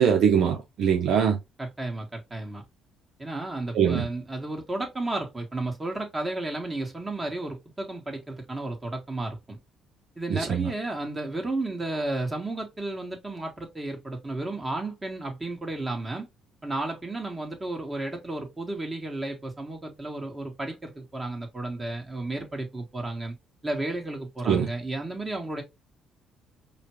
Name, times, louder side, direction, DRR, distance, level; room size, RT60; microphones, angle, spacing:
voice 1, 0.0-1.4 3.7-4.1 10.3-10.7 24.5-24.7, right 8 dB, 70° right, 0.7 m, -22 dB
voice 2, 1.6-2.6 3.2-9.6 10.2-16.3 16.6-23.3 23.6-25.6, right 2 dB, 20° right, 1.6 m, -33 dB
4.9 x 2.3 x 3.0 m
supercardioid pair, 80°, 0 cm